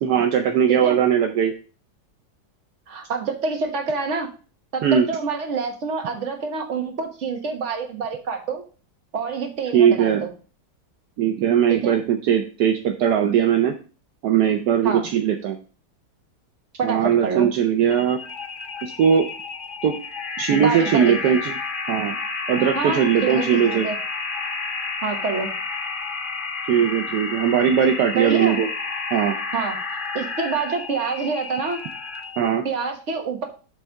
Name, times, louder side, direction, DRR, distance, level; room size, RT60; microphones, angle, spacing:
voice 1, 0.0-1.5 4.8-5.1 9.7-10.2 11.2-13.7 14.2-15.6 16.8-18.2 18.8-19.3 19.8-20.0 20.4-21.5 21.9-22.2 22.5-23.9 26.7-28.7 29.1-29.4 32.4-32.6, right 8 dB, 70° right, 5 dB, 1.2 m, -19 dB
voice 2, 0.7-1.0 2.9-4.3 4.7-8.6 9.1-10.3 11.7-12.0 14.8-15.1 16.8-17.5 20.5-21.1 22.7-24.0 25.0-25.5 28.1-28.6 29.5-29.8 30.1-31.8 32.6-33.4, right 5 dB, 45° right, 3 dB, 1.6 m, -27 dB
sound 1, 17.9-32.5, left 4 dB, 35° left, 1.0 m, -31 dB
8.0 x 3.4 x 6.3 m, 0.36 s
omnidirectional pair, 1.9 m